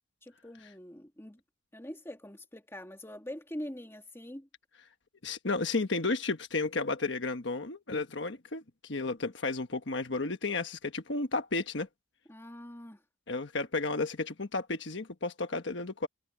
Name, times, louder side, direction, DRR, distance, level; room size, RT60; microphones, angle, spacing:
voice 1, 0.2-1.4 1.7-4.5 12.3-13.0, left 1 dB, 15° left, 2.2 m, -44 dB
voice 2, 5.2-11.9 13.3-16.1, left 3 dB, 65° left, 1.3 m, -33 dB
head